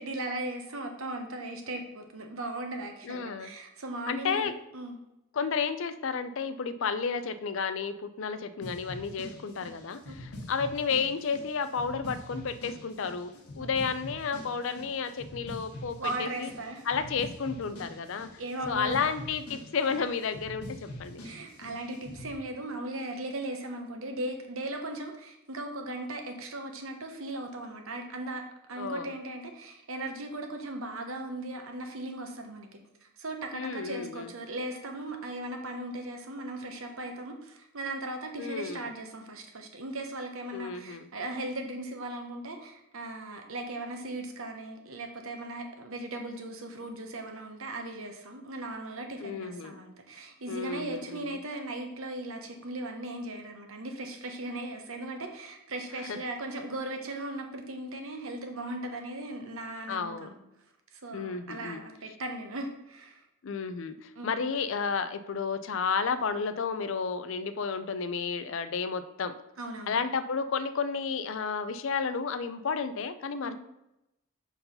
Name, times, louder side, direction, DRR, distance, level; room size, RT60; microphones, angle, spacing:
voice 1, 0.0-5.0 10.0-10.2 13.6-13.7 16.0-16.9 18.4-19.0 21.2-28.4 28.7-32.7 33.0-60.4 60.9-63.2 64.2-64.4 69.6-70.0 73.4-73.6, right 1 dB, 70° right, 4 dB, 1.1 m, -38 dB
voice 2, 3.0-3.5 4.1-4.5 5.3-16.5 16.9-18.3 18.7-21.2 28.7-29.1 33.5-34.3 38.4-38.9 40.5-41.1 49.2-49.8 50.5-51.4 56.1-56.2 59.9-60.3 61.1-61.8 63.4-69.3 69.9-73.6, left 5 dB, 60° left, 12 dB, 0.4 m, -32 dB
sound 1, 8.6-22.3, left 1 dB, 90° left, 1.5 m, -44 dB
5.5 x 4.6 x 5.4 m, 0.89 s
head